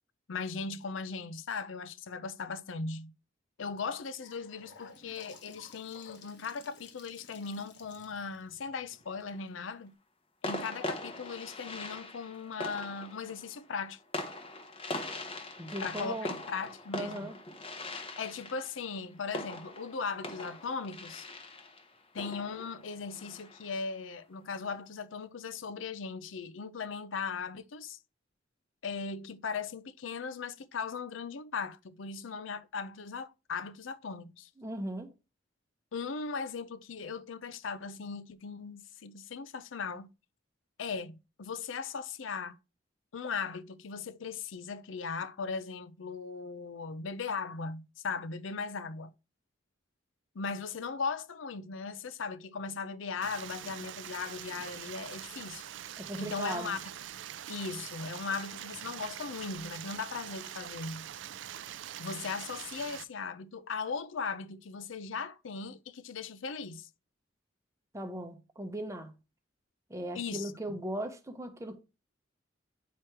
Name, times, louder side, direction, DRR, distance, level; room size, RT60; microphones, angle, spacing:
voice 1, 0.3-3.1 3.6-10.0 10.4-14.0 15.8-17.3 18.2-21.3 22.1-28.0 28.8-34.5 35.9-40.1 40.8-42.6 43.1-49.1 50.3-55.6 56.2-56.8 57.5-61.1 62.0-66.9 70.1-70.8, left 5 dB, 80° left, 0.5 m, -38 dB
Gurgling / Sink (filling or washing) / Bathtub (filling or washing), 3.8-9.9, left 5 dB, 60° left, 1.1 m, -55 dB
sound 1, 8.9-9.5 10.4-23.8, left 2 dB, 30° left, 0.9 m, -42 dB
voice 2, 15.6-16.4 16.9-17.4 34.6-35.1 56.0-56.8 67.9-69.1 69.9-71.8, right 1 dB, 15° right, 0.7 m, -38 dB
Stream, 53.2-63.0, right 11 dB, 70° right, 0.4 m, -44 dB
9.1 x 3.1 x 4.6 m
head